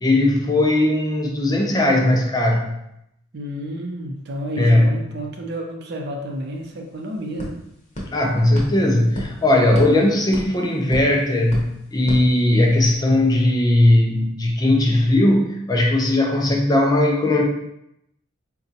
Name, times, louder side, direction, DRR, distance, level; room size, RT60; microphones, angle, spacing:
voice 1, 0.0-2.8 4.6-5.0 8.1-17.4, left 1 dB, 20° left, 0 dB, 0.4 m, -18 dB
voice 2, 3.3-7.6, equal, 55° right, 2 dB, 0.5 m, -30 dB
sound 1, 6.3-6.4 6.6-13.0, equal, 40° left, 0.7 m, -35 dB
3.9 x 2.2 x 2.7 m, 0.79 s
head